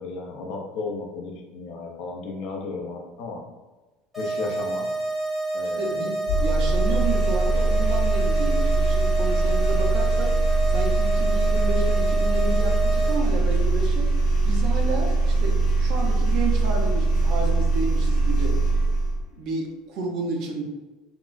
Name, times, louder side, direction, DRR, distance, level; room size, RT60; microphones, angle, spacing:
voice 1, 0.0-3.4 4.2-4.9 5.5-6.0, left 3 dB, 50° left, 1 dB, 0.5 m, -34 dB
sound 1, 4.1-13.1, right 2 dB, 5° right, 0.8 m, -28 dB
voice 2, 5.8-10.3 10.7-14.1 14.4-18.6 19.3-20.6, right 2 dB, 45° right, 1 dB, 0.5 m, -31 dB
sound 2, 6.3-19.2, right 2 dB, 80° left, 1.0 m, -22 dB
3.5 x 2.0 x 2.4 m, 1.2 s
cardioid pair, 170°, 0 cm